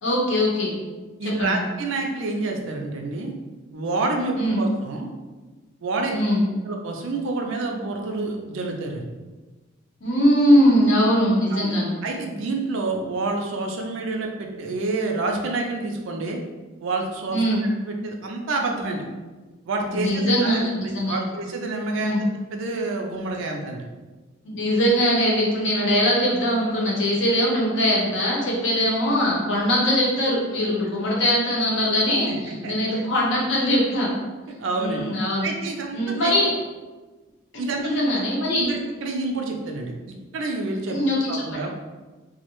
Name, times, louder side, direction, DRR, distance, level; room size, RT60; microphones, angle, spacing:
voice 1, 0.0-0.8 1.2-1.6 4.4-4.6 6.1-6.4 10.0-11.9 17.3-17.6 19.9-21.2 21.9-22.2 24.4-34.1 34.8-35.5 35.9-36.5 37.8-38.7 40.9-41.3, equal, 65° left, -3 dB, 0.7 m, -21 dB
voice 2, 1.2-3.3 3.7-5.1 5.8-6.1 6.6-9.0 11.5-11.7 12.0-16.4 16.8-17.4 17.8-19.0 19.6-22.2 22.5-23.8 30.6-30.7 32.3-32.4 32.6-32.7 34.5-35.0 35.4-36.3 37.6-37.8 38.1-38.2 38.6-39.9 40.3-41.0 41.3-41.7, right 3 dB, 70° right, 1 dB, 0.4 m, -28 dB
2.3 x 2.1 x 2.9 m, 1.2 s
head